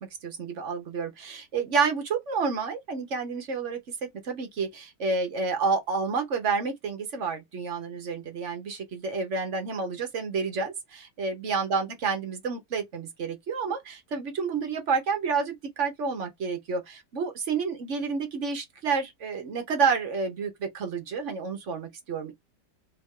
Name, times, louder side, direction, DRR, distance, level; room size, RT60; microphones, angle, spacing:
voice 1, 0.2-3.8 4.2-22.3, right 5 dB, 50° right, 1.1 m, -29 dB
3.2 x 2.6 x 3.6 m
omnidirectional pair, 1.9 m